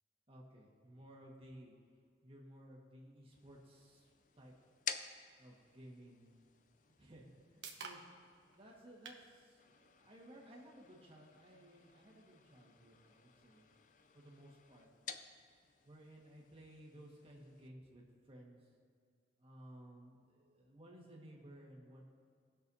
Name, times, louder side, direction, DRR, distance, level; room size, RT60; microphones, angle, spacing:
voice 1, 0.3-1.7 2.2-4.5 5.4-6.3 7.0-13.7 14.1-14.9 15.8-18.7 19.4-22.1, right 1 dB, 30° right, -3 dB, 1.6 m, -57 dB
sound 1, 3.3-17.7, left 8 dB, 45° left, 0.4 m, -53 dB
sound 2, 6.9-20.8, right 5 dB, 75° right, 1.0 m, -61 dB
17.5 x 6.4 x 2.8 m, 2.1 s
head